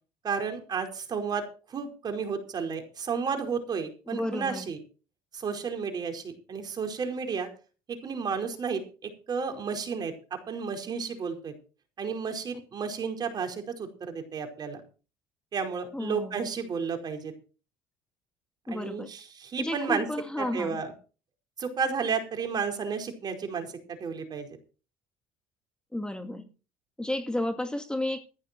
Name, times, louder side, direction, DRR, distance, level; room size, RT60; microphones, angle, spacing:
voice 1, 0.2-1.4 1.7-4.8 5.3-7.5 8.0-8.8 9.3-11.5 12.0-14.8 15.5-17.3 18.7-20.0 20.4-20.9 21.6-23.7 24.0-24.5, right 5 dB, 45° right, 4.9 m, -32 dB
voice 2, 4.1-4.7 15.9-16.4 18.7-19.1 19.6-20.8 25.9-26.5 27.0-28.2, left 1 dB, 10° left, 2.3 m, -32 dB
15.0 x 11.0 x 4.6 m
supercardioid pair, 85°, 10 cm